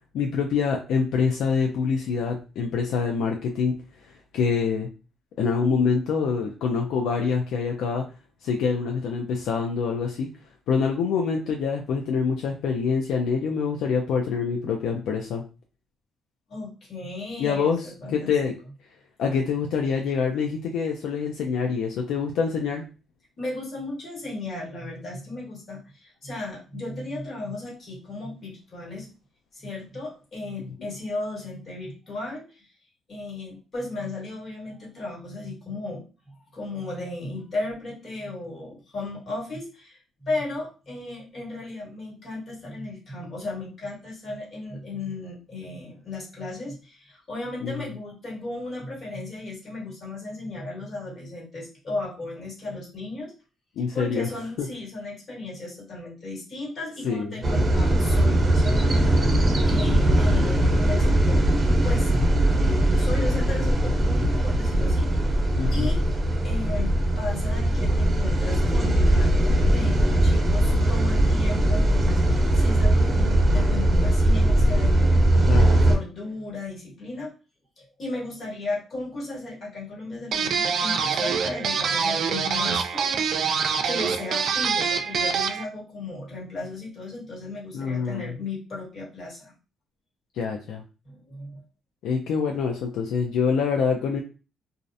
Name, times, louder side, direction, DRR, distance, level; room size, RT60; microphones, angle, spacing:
voice 1, 0.1-3.7 4.1-4.9 5.4-8.0 8.4-10.3 10.7-15.4 17.4-17.8 18.1-18.5 19.2-22.8 30.8-30.9 47.6-47.7 53.8-54.3 54.6-54.7 57.0-57.3 65.6-65.9 75.5-75.8 87.7-88.3 90.3-90.8 92.0-94.2, left 5 dB, 85° left, 2 dB, 0.3 m, -25 dB
voice 2, 16.5-18.3 23.4-29.1 29.5-32.7 33.1-53.3 53.9-62.1 63.0-65.4 65.7-75.5 75.8-77.3 77.8-83.4 83.8-89.5 91.0-91.6, left 2 dB, 50° left, -3 dB, 1.5 m, -35 dB
sound 1, 57.4-75.9, right 1 dB, 30° right, 0.8 m, -20 dB
sound 2, 80.3-85.6, right 6 dB, 65° right, 0.3 m, -25 dB
2.4 x 2.0 x 2.6 m, 0.33 s
cardioid pair, 90°, 0 cm